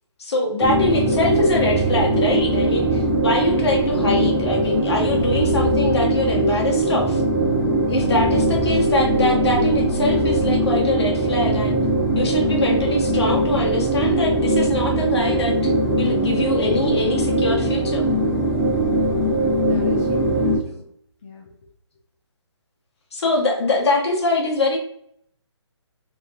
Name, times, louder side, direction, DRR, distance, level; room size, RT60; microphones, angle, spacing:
voice 1, 0.2-7.2 7.9-11.8 12.1-15.7 16.0-18.1 23.1-24.8, left 2 dB, 60° left, -1 dB, 1.1 m, -23 dB
sound 1, 0.6-20.6, right 1 dB, 15° right, 1.0 m, -20 dB
voice 2, 8.1-8.7 19.6-20.9 21.2-21.5, left 3 dB, 25° left, -3 dB, 0.4 m, -36 dB
3.3 x 2.2 x 2.6 m, 0.69 s
hypercardioid pair, 165°, 15 cm